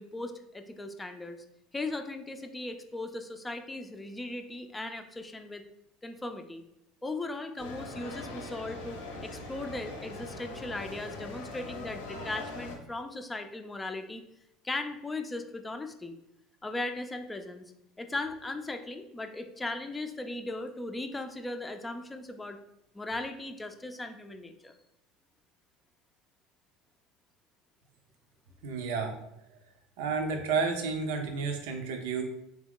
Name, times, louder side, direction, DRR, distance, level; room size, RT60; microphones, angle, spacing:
voice 1, 0.0-1.4 1.7-5.6 6.0-6.6 7.0-14.2 14.6-16.1 16.6-17.7 18.0-22.6 22.9-24.8, left 2 dB, 15° left, 6 dB, 0.5 m, -38 dB
sound 1, 7.6-12.8, left 2 dB, 90° left, 0.9 m, -42 dB
voice 2, 28.6-29.2 30.0-32.2, right 5 dB, 75° right, 4 dB, 0.6 m, -31 dB
3.5 x 2.9 x 3.7 m, 0.80 s
hypercardioid pair, 75°, 0 cm